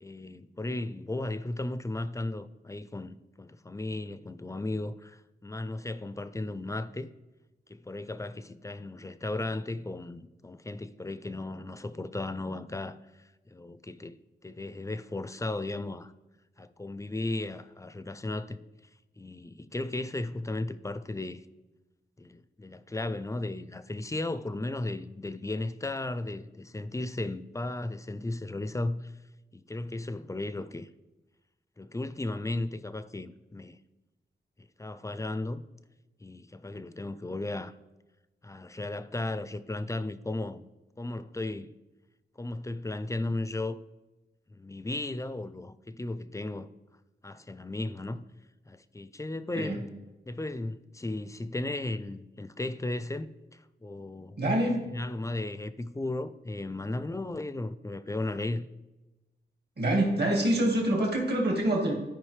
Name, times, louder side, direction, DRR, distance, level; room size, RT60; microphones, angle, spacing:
voice 1, 0.0-7.1 7.7-14.2 14.4-16.1 16.6-18.6 19.2-21.4 22.2-29.1 29.5-30.9 31.8-33.8 34.6-35.6 36.2-37.7 38.4-40.6 41.0-41.7 42.4-43.8 44.5-46.7 47.2-48.2 48.7-49.8 50.3-54.4 54.9-58.7, left 2 dB, 15° left, 0.4 m, -35 dB
voice 2, 49.5-49.9 54.4-54.9 59.8-61.9, right 1 dB, 60° right, 1.8 m, -26 dB
12.0 x 5.0 x 3.2 m
wide cardioid pair, 80°, 19 cm